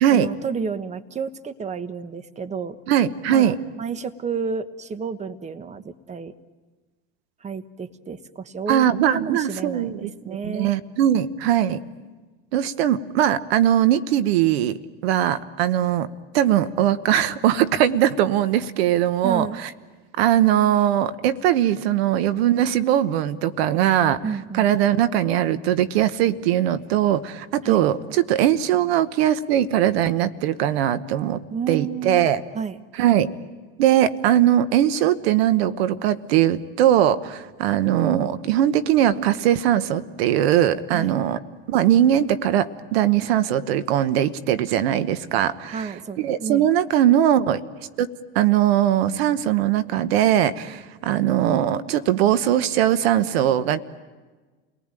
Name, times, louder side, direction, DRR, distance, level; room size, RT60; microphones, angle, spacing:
voice 1, 0.1-2.8 3.3-6.3 7.4-10.7 19.2-19.6 24.2-24.7 27.6-27.8 31.5-32.3 32.5-32.8 40.9-41.1 45.7-46.7, right 5 dB, 20° right, 12 dB, 1.2 m, -31 dB
voice 2, 2.9-3.5 8.7-11.8 12.5-14.8 15.0-16.1 16.3-19.7 20.2-24.2 24.5-31.4 31.7-32.4 33.0-33.3 33.8-41.4 41.7-45.9 46.2-47.6 48.0-48.1 48.3-53.8, right 11 dB, 80° right, 13 dB, 1.1 m, -20 dB
29.5 x 19.0 x 9.0 m, 1.3 s
supercardioid pair, 100°, 31 cm